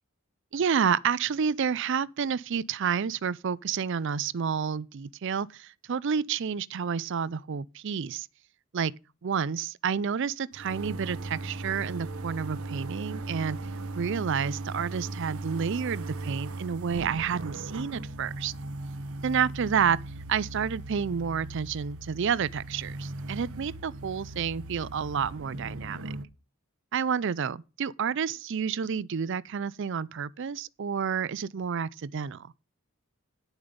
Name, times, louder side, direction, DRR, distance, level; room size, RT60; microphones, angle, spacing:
voice 1, 0.5-8.3 8.7-8.9 9.2-13.6 14.0-18.5 19.2-20.0 20.3-26.0 26.9-32.5, right 7 dB, 60° right, 0.4 m, -29 dB
sound 1, 10.5-26.2, right 2 dB, 85° right, 1.0 m, -38 dB
9.7 x 7.2 x 5.1 m
head